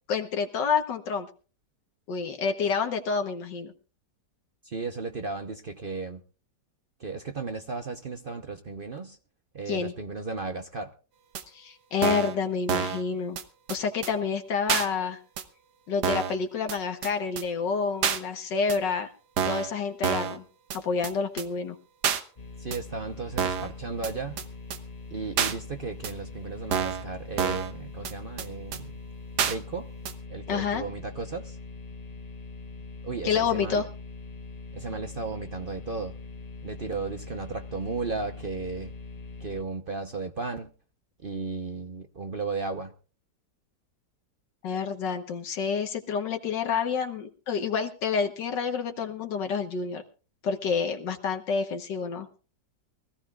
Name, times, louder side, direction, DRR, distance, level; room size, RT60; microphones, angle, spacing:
voice 1, 0.1-1.3 2.1-3.7 9.7-9.9 11.5-13.4 13.7-15.2 15.9-19.1 19.4-20.4 20.7-21.8 30.5-30.8 33.2-33.9 44.6-50.0 50.4-52.3, left 5 dB, 80° left, 1.8 m, -28 dB
voice 2, 4.6-6.2 7.0-9.2 9.5-10.9 22.6-24.4 25.1-28.9 29.4-29.9 30.3-31.6 33.0-33.9 34.7-36.1 36.6-38.9 39.4-40.7 41.2-42.9, right 4 dB, 45° right, 0.8 m, -35 dB
sound 1, 11.3-11.4 12.0-12.3 12.7-13.0 13.4-13.5 13.7-13.8 14.0-14.1 14.7-14.9 15.4-15.5 16.0-16.3 16.7-16.8 17.0-17.1 17.4-17.5 18.0-18.2 18.7-18.8 19.4-19.7 20.0-20.4 20.7-20.8 21.0-21.1 21.4-21.5 22.0-22.2 22.7-22.8 23.4-23.7 24.0-24.1 24.4-24.5 24.7-24.8 25.4-25.5 26.0-26.1 26.7-27.0 27.4-27.7 28.0-28.1 28.4-28.5 28.7-28.8 29.4-29.5 30.0-30.1, right 7 dB, 70° right, 1.7 m, -27 dB
sound 2, 22.4-39.6, left 3 dB, 30° left, 0.7 m, -42 dB
23.5 x 15.5 x 2.4 m
omnidirectional pair, 1.9 m